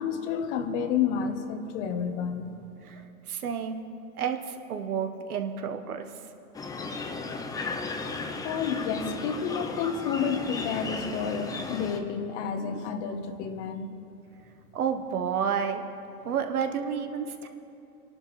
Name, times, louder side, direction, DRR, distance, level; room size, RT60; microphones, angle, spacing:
voice 1, 0.0-2.6 8.4-13.9, left 7 dB, 50° left, 8 dB, 1.2 m, -30 dB
voice 2, 3.3-3.8 4.2-6.1 14.7-15.8 16.2-17.5, right 7 dB, 75° right, 6 dB, 1.2 m, -30 dB
sound 1, 6.5-12.0, left 3 dB, 10° left, 0.5 m, -35 dB
25.5 x 11.5 x 3.2 m, 2.8 s
hypercardioid pair, 120°, 45 cm